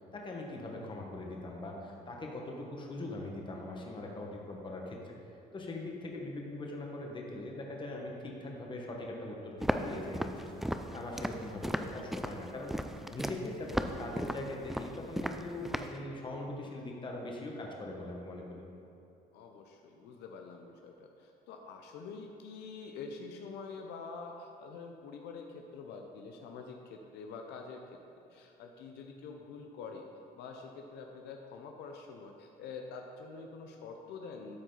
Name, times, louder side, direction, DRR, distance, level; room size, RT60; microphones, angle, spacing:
voice 1, 0.1-5.1 5.5-10.6 10.9-12.7 13.1-18.6, left 2 dB, 30° left, -1 dB, 1.3 m, -41 dB
Walk footsteps, 9.6-16.0, equal, ahead, 0.3 m, -36 dB
voice 2, 19.3-27.8 28.3-30.1 30.3-34.6, left 4 dB, 80° left, 3 dB, 0.7 m, -46 dB
12.0 x 4.6 x 4.0 m, 2.8 s
cardioid pair, 110°, 17 cm